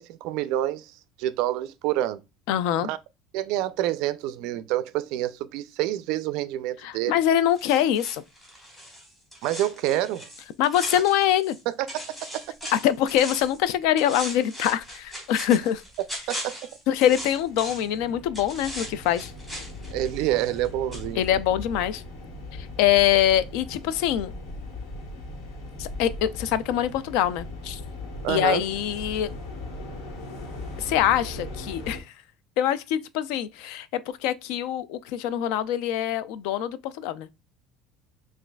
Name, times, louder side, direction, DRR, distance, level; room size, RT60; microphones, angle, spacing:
voice 1, 0.0-2.2 2.8-3.0 3.3-7.2 9.4-10.3 11.9-12.4 16.3-16.6 19.9-21.2 28.2-28.6, right 13 dB, 60° right, 0.3 m, -27 dB
voice 2, 2.5-2.9 6.8-8.2 10.6-11.6 12.7-15.8 16.9-19.3 21.2-22.0 22.5-24.3 25.8-27.8 28.3-29.3 30.8-32.0 32.6-37.3, left 11 dB, 65° left, 0.3 m, -24 dB
sound 1, 7.5-11.6 11.9-13.6 14.0-18.0 18.3-20.7 20.9-21.0, equal, 10° left, 1.4 m, -39 dB
sound 2, 17.0-32.0, left 2 dB, 90° left, 1.3 m, -39 dB
6.1 x 2.4 x 2.2 m
cardioid pair, 175°, 0 cm